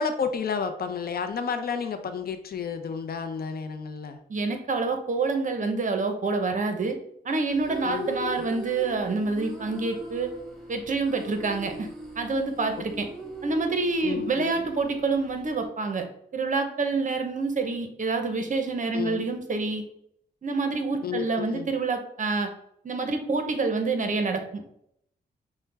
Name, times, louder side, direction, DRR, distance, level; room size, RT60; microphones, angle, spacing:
voice 1, 0.0-4.2 7.8-8.5 11.8-11.9 14.0-14.6 18.9-19.3 21.0-21.7, left 6 dB, 60° left, 8 dB, 0.5 m, -31 dB
voice 2, 4.3-7.0 7.2-10.3 10.7-11.9 12.2-13.1 13.4-16.1 16.3-19.8 20.4-22.5 22.8-24.6, right 3 dB, 45° right, 6 dB, 0.7 m, -27 dB
sound 1, 7.5-15.7, right 1 dB, ahead, 1.1 m, -40 dB
5.7 x 2.1 x 3.3 m, 0.70 s
cardioid pair, 75°, 18 cm